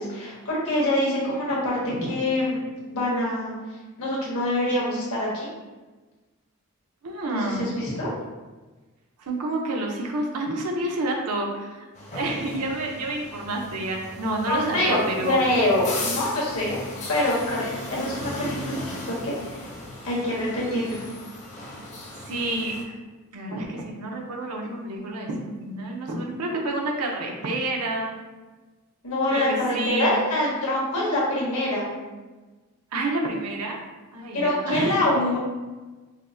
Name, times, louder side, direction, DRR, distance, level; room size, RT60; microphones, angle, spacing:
voice 1, 0.0-2.6 2.9-3.5 4.0-5.5 7.3-8.1 14.5-16.8 17.1-18.8 19.1-19.7 20.0-21.0 29.0-31.9 34.3-35.4, left 1 dB, 75° left, -6 dB, 1.3 m, -25 dB
voice 2, 1.8-2.2 7.0-7.7 9.2-11.9 12.1-15.4 22.2-22.9 23.3-28.1 29.3-30.1 32.9-33.8 34.1-35.1, right 2 dB, 90° right, 1 dB, 0.6 m, -29 dB
sound 1, 11.9-22.8, left 2 dB, 30° left, 0.5 m, -37 dB
5.0 x 2.1 x 2.6 m, 1.2 s
head